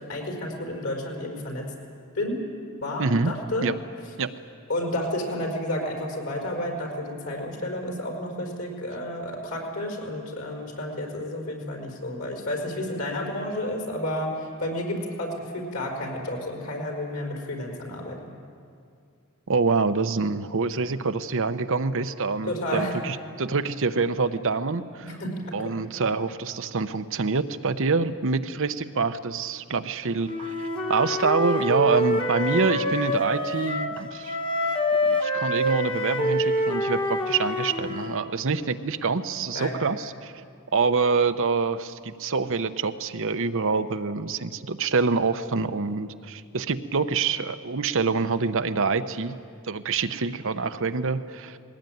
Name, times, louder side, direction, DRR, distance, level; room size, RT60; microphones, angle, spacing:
voice 1, 0.1-1.7 2.1-2.4 2.8-3.7 4.7-18.2 22.5-23.0 25.0-25.6 39.5-39.8, left 1 dB, 65° left, 1 dB, 5.1 m, -31 dB
voice 2, 3.0-3.3 3.6-3.7 4.2-4.3 19.5-25.1 25.5-34.4 35.0-40.3 40.7-49.3 49.7-51.6, right 4 dB, 65° right, 9 dB, 0.8 m, -26 dB
Wind instrument woodwind instrument, 30.2-34.0 34.2-38.2, left 1 dB, 25° left, 1.5 m, -26 dB
20.5 x 18.5 x 9.3 m, 2.3 s
head